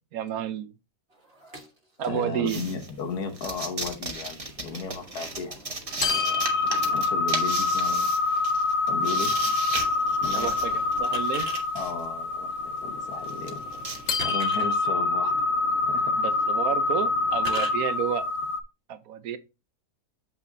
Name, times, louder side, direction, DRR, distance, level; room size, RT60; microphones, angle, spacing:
voice 1, 0.1-0.7 2.0-2.6 10.3-11.5 16.2-18.2 18.9-19.4, right 9 dB, 70° right, 1.2 m, -30 dB
sound 1, 1.1-2.4 3.0-3.1 4.1-7.2 8.9-9.0 9.3-11.6 12.4-17.7, right 1 dB, 40° right, 1.7 m, -44 dB
voice 2, 2.1-5.6 6.0-6.5 6.9-8.1 8.9-9.4 10.2-10.5 11.7-13.7 14.2-15.3 15.9-16.2, left 4 dB, 85° left, 1.8 m, -35 dB
sound 2, 2.5-12.0 12.7-12.8 13.1-14.1, right 3 dB, 25° right, 1.0 m, -36 dB
sound 3, 6.0-18.6, left 3 dB, 60° left, 1.2 m, -26 dB
7.4 x 5.7 x 2.7 m
omnidirectional pair, 1.6 m